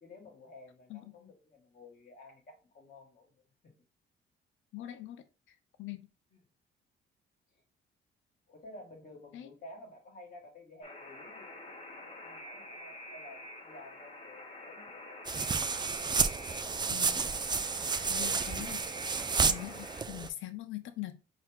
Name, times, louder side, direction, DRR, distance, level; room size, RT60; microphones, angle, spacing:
voice 1, 0.0-3.7 6.3-6.4 7.5-7.6 8.5-15.2 16.1-16.9, left 2 dB, 45° left, 1.7 m, -53 dB
voice 2, 4.7-6.1 9.3-9.5 16.9-17.3 18.1-18.8 19.4-21.1, left 15 dB, 80° left, 0.5 m, -43 dB
Alarm, 10.8-20.0, left 1 dB, 30° left, 1.1 m, -47 dB
sound 1, 15.2-20.3, right 5 dB, 20° right, 0.4 m, -31 dB
4.7 x 2.8 x 3.5 m
cardioid pair, 90°, 20 cm